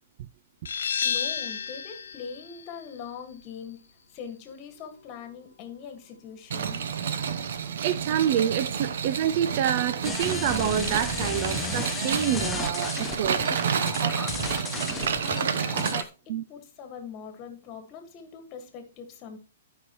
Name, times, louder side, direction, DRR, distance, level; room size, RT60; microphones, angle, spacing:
sound 1, 0.7-6.1, left 7 dB, 90° left, 0.6 m, -34 dB
voice 1, 1.0-3.8 4.1-6.8 14.6-19.4, left 6 dB, 30° left, 1.7 m, -42 dB
sound 2, 6.5-16.0, right 7 dB, 70° right, 0.9 m, -29 dB
voice 2, 7.8-13.4 16.3-16.4, right 10 dB, 45° right, 0.4 m, -27 dB
sound 3, 10.0-16.0, left 6 dB, 10° left, 0.5 m, -34 dB
13.5 x 5.5 x 3.1 m
hypercardioid pair, 155°, 0 cm